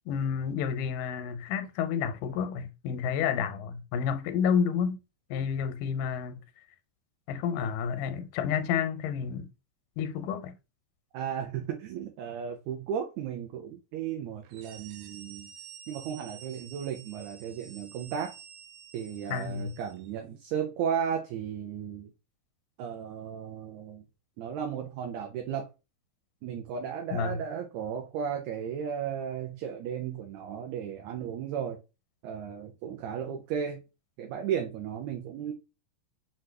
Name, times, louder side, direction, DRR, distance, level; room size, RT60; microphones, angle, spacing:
voice 1, 0.1-5.0 5.3-6.4 7.3-9.5 10.0-10.5 19.3-19.7 27.1-27.4, left 7 dB, 85° left, 2.2 m, -30 dB
voice 2, 11.1-15.5 15.9-18.4 18.9-22.1 22.8-24.0 24.4-25.7 26.4-31.8 32.2-33.8 34.2-35.5, right 8 dB, 75° right, 1.8 m, -35 dB
sound 1, 14.4-20.1, right 8 dB, 90° right, 2.2 m, -50 dB
5.9 x 2.5 x 3.2 m
omnidirectional pair, 3.6 m